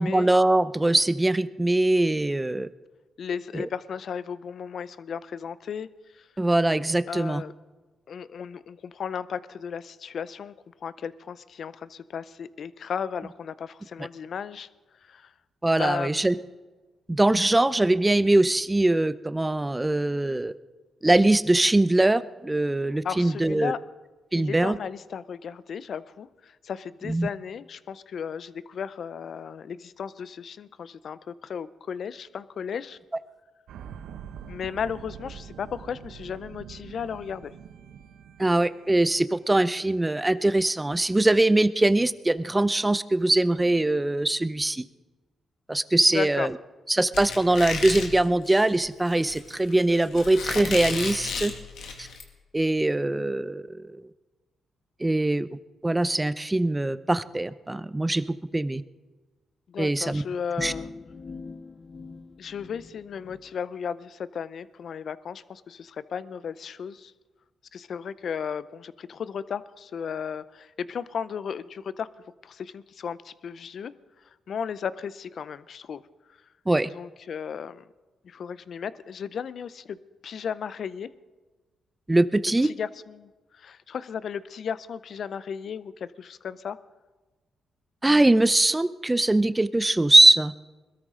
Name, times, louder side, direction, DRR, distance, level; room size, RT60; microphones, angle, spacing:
voice 1, 0.0-2.7 3.5-3.7 6.4-7.4 15.6-16.4 17.1-20.5 21.0-23.7 24.3-24.8 27.0-27.3 38.4-44.8 45.7-46.5 46.9-51.5 52.0-52.1 52.5-54.0 55.0-55.5 55.8-58.2 58.5-58.8 59.8-60.2 60.6-60.7 76.7-76.9 82.1-82.7 88.0-90.5, right 2 dB, 15° right, 15 dB, 0.6 m, -22 dB
voice 2, 3.2-5.9 6.1-6.2 7.1-7.5 8.1-10.5 10.8-14.7 15.1-15.3 15.8-16.3 23.0-23.8 24.4-33.0 34.5-37.5 46.1-46.5 59.7-60.9 62.4-67.1 67.7-72.1 72.4-73.9 74.5-76.0 76.9-77.8 78.2-80.0 80.2-81.1 82.6-86.8, left 7 dB, 65° left, 16 dB, 0.6 m, -35 dB
sound 1, 33.7-39.9 40.2-40.3, right 8 dB, 85° right, 0.7 m, -45 dB
Squeak, 47.1-52.2, left 5 dB, 80° left, 2.0 m, -34 dB
sound 2, 60.6-63.4, left 4 dB, 40° left, 1.3 m, -42 dB
21.5 x 13.5 x 3.8 m, 1.3 s
cardioid pair, 70°, 0 cm